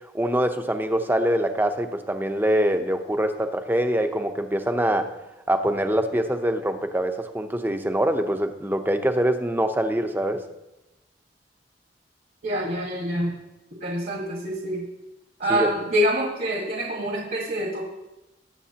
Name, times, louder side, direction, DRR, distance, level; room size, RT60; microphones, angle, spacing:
voice 1, 0.1-5.1 5.5-10.4 15.5-15.7, right 1 dB, 10° right, 7 dB, 0.8 m, -24 dB
voice 2, 12.4-13.3 13.8-14.8 15.4-17.8, equal, 50° right, -1 dB, 1.7 m, -26 dB
20.5 x 7.4 x 2.9 m, 0.98 s
head